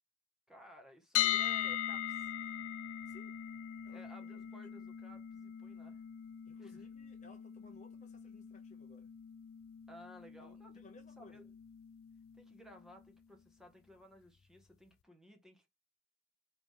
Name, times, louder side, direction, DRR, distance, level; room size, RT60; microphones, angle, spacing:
voice 1, 0.5-2.6 3.9-6.0 6.6-6.8 9.9-10.8 11.2-11.4 12.3-15.7, equal, ahead, 0.8 m, -57 dB
sound 1, 1.1-13.1, left 11 dB, 75° left, 0.4 m, -40 dB
voice 2, 3.8-4.6 6.4-9.1 10.4-11.4, left 2 dB, 35° left, 0.6 m, -60 dB
4.9 x 2.9 x 3.5 m
head